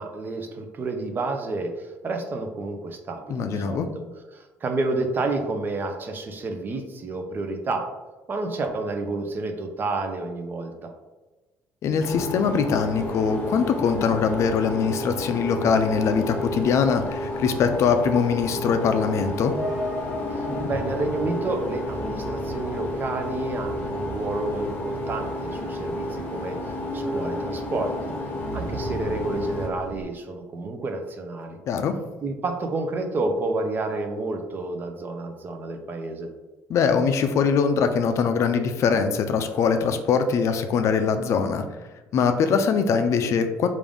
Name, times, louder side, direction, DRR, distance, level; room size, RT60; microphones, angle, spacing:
voice 1, 0.0-4.0 4.3-7.9 8.3-10.9 20.3-28.1 28.5-31.6 32.2-36.3, right 2 dB, 35° right, 5 dB, 0.6 m, -30 dB
voice 2, 3.3-3.9 11.8-19.5 31.7-31.9 36.7-41.6 42.1-43.7, left 6 dB, 55° left, 8 dB, 0.4 m, -22 dB
sound 1, 12.0-29.7, left 1 dB, 30° left, 1.0 m, -32 dB
sound 2, 13.4-30.0, equal, 5° left, 0.8 m, -38 dB
3.6 x 2.5 x 3.4 m, 1.2 s
cardioid pair, 115°, 6 cm